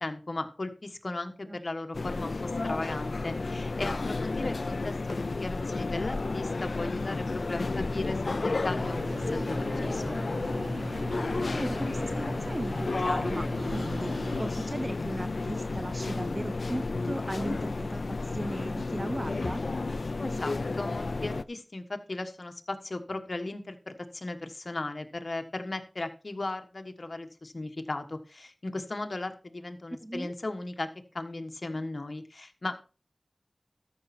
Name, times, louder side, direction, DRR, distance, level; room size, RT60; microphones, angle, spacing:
voice 1, 0.0-10.2 20.2-30.9 31.1-32.8, left 2 dB, 60° left, 6 dB, 1.4 m, -37 dB
sound 1, 1.9-21.4, left 3 dB, 85° left, 0.4 m, -32 dB
sound 2, 8.8-14.5, right 2 dB, 70° right, 0.5 m, -39 dB
voice 2, 11.6-19.6 30.0-30.3, right 1 dB, 25° right, 13 dB, 0.5 m, -37 dB
13.5 x 6.6 x 4.3 m, 0.34 s
wide cardioid pair, 65°, 0 cm